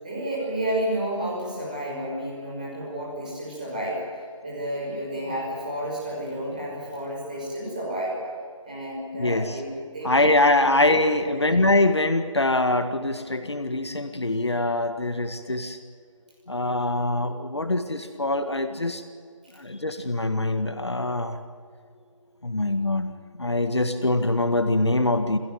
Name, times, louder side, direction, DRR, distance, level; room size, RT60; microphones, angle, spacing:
voice 1, 0.0-4.0 4.4-8.2 8.6-10.3 11.0-11.4, right 1 dB, 15° right, -5 dB, 5.6 m, -31 dB
voice 2, 9.2-9.6 10.0-15.8 16.5-19.0 19.6-21.4 22.4-23.1 23.4-25.4, left 2 dB, 55° left, 8 dB, 1.8 m, -23 dB
28.0 x 16.0 x 9.3 m, 2.2 s
figure-of-eight pair, 175°, 17 cm